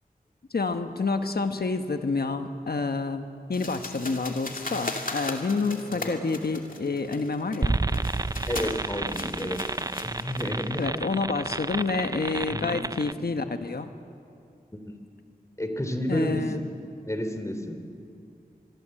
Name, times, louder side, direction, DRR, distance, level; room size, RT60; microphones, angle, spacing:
voice 1, 0.5-7.8 10.8-13.9 16.1-16.6, left 4 dB, 85° left, 7 dB, 1.3 m, -28 dB
sound 1, 3.5-10.9, left 2 dB, 60° left, 2.5 m, -38 dB
voice 2, 5.9-6.2 8.5-9.6 10.0-11.0 12.5-12.8 14.7-15.0 15.6-16.6 17.1-17.8, equal, 20° left, 6 dB, 3.0 m, -31 dB
sound 2, 7.6-13.1, right 2 dB, 25° right, 0.5 m, -30 dB
25.5 x 22.5 x 7.7 m, 2.6 s
wide cardioid pair, 65°, 16 cm